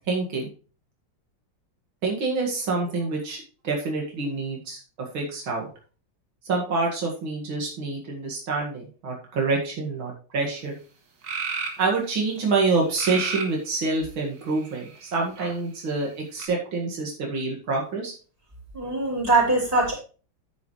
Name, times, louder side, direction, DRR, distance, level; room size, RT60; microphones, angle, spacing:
voice 1, 0.1-0.5 2.0-5.7 6.4-10.8 11.8-18.1, right 3 dB, 90° right, -1 dB, 2.8 m, -27 dB
sound 1, 10.6-10.7 11.2-11.8 13.0-13.6 14.4-15.1 16.4-16.5, right 5 dB, 60° right, 2.2 m, -31 dB
voice 2, 18.7-19.9, right 2 dB, 15° right, -5 dB, 4.6 m, -22 dB
9.5 x 9.4 x 3.2 m, 0.36 s
omnidirectional pair, 2.2 m